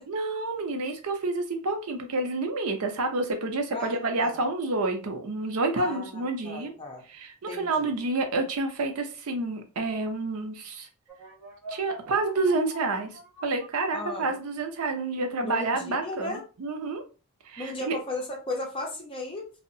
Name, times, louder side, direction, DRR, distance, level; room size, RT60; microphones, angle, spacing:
voice 1, 0.1-6.7 7.1-10.9 11.7-17.0 17.5-17.9, right 3 dB, 75° right, 5 dB, 0.5 m, -29 dB
voice 2, 3.7-4.4 5.7-7.0 7.5-7.9 13.9-14.3 15.4-16.4 17.6-19.5, left 2 dB, 25° left, 0 dB, 0.6 m, -36 dB
sound 1, 11.1-14.6, right 1 dB, 5° right, 0.9 m, -44 dB
2.7 x 2.0 x 2.5 m, 0.33 s
head